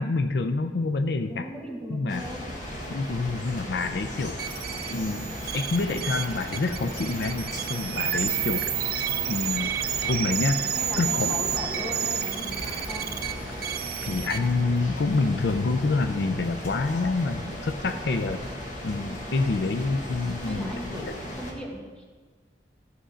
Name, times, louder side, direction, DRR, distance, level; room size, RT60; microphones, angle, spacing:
voice 1, 0.0-1.5 1.9-2.2 2.9-4.4 4.9-8.6 9.3-9.7 10.0-10.6 11.0-11.4 14.0-18.4 18.8-21.1, left 3 dB, 70° left, 9 dB, 0.5 m, -27 dB
voice 2, 1.3-2.5 10.8-13.2 20.4-21.1 21.3-22.1, equal, 5° left, -2 dB, 1.5 m, -38 dB
sound 1, 2.1-21.5, equal, 45° left, 1.5 m, -36 dB
sound 2, 4.4-14.4, right 11 dB, 55° right, 0.5 m, -30 dB
14.0 x 5.1 x 5.0 m, 1.4 s
head